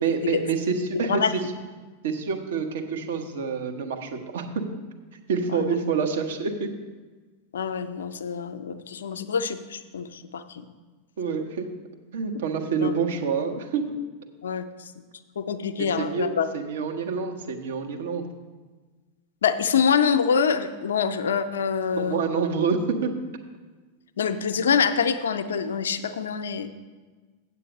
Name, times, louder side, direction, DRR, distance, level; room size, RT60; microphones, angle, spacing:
voice 1, 0.0-1.4 2.0-4.6 5.3-6.7 11.2-11.7 12.1-14.0 15.8-18.3 22.0-23.1, right 5 dB, 60° right, 4 dB, 0.9 m, -27 dB
voice 2, 7.5-10.6 12.8-13.0 14.4-14.6 15.4-16.5 19.4-22.2 24.2-26.7, left 6 dB, 65° left, 10 dB, 0.5 m, -25 dB
8.3 x 7.2 x 5.1 m, 1.3 s
figure-of-eight pair, 90°, 0 cm